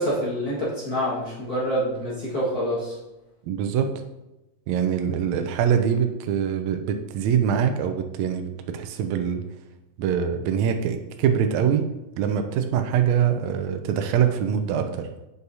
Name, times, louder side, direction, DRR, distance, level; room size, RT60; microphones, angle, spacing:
voice 1, 0.0-3.0, equal, 45° left, -7 dB, 1.3 m, -26 dB
voice 2, 3.4-3.9 4.7-9.4 10.0-11.9 12.2-15.1, right 8 dB, 90° right, 6 dB, 1.6 m, -24 dB
8.1 x 6.4 x 2.7 m, 0.97 s
omnidirectional pair, 4.0 m